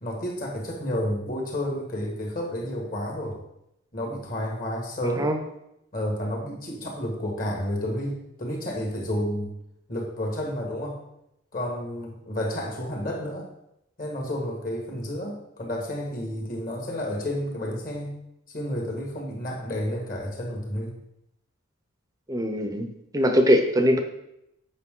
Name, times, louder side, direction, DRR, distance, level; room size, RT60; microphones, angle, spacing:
voice 1, 0.0-3.4 3.9-5.3 5.9-9.5 9.9-11.0 11.5-13.5 14.0-18.2 18.5-21.0, equal, 45° left, 0 dB, 1.8 m, -31 dB
voice 2, 22.3-22.9 23.1-24.0, equal, 15° right, 6 dB, 0.7 m, -21 dB
8.4 x 5.6 x 3.8 m, 0.82 s
head